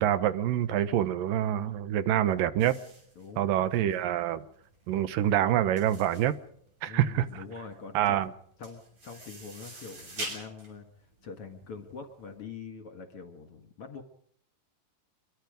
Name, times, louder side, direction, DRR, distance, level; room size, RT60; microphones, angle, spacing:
voice 1, 0.0-2.8 3.4-4.4 4.9-6.4 6.8-7.3 7.9-8.3, right 11 dB, 85° right, 2.7 m, -26 dB
sound 1, 2.6-12.2, right 2 dB, 55° right, 8.1 m, -45 dB
voice 2, 3.2-3.7 6.9-8.2 8.6-10.9 11.2-14.0, left 5 dB, 50° left, 2.4 m, -44 dB
26.0 x 23.0 x 5.2 m
omnidirectional pair, 3.8 m